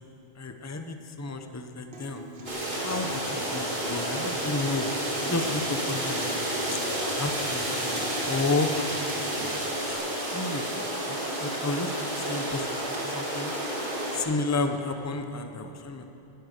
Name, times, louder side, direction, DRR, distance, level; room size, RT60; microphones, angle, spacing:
voice 1, 0.4-2.2 2.8-6.8 7.1-8.7 9.8-12.7 12.9-13.5 14.1-16.0, left 3 dB, 20° left, 6 dB, 0.8 m, -32 dB
Human voice / Acoustic guitar, 1.9-9.9, right 2 dB, 80° right, 1.6 m, -42 dB
sound 1, 2.5-14.2, right 1 dB, 55° right, 2.6 m, -31 dB
sound 2, 6.6-12.6 13.7-13.8, left 1 dB, 55° left, 2.2 m, -44 dB
18.5 x 11.5 x 6.6 m, 2.9 s
omnidirectional pair, 1.0 m